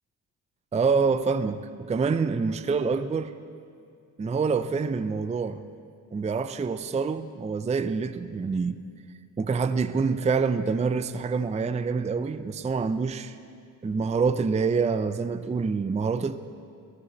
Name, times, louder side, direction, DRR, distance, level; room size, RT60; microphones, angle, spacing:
voice 1, 0.7-3.3 4.2-5.6 6.1-8.8 9.4-13.4 13.8-16.4, right 5 dB, 15° right, 0.5 m, -26 dB
15.0 x 14.5 x 4.0 m
hypercardioid pair, 45°, 44 cm